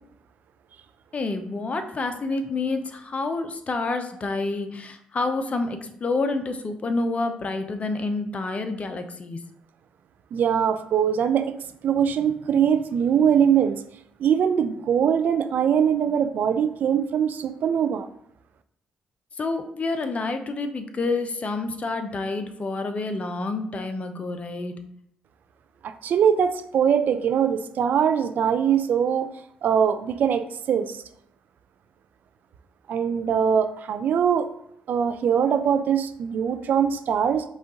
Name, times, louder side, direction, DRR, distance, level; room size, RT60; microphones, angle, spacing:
voice 1, 1.1-9.4 19.4-24.8, left 3 dB, 40° left, 7 dB, 0.6 m, -28 dB
voice 2, 10.3-11.6 11.8-13.8 14.2-18.1 25.8-29.3 29.6-31.0 32.9-34.5 34.9-37.4, right 8 dB, 60° right, 10 dB, 0.4 m, -22 dB
5.1 x 2.4 x 3.8 m, 0.73 s
hypercardioid pair, 45°, 3 cm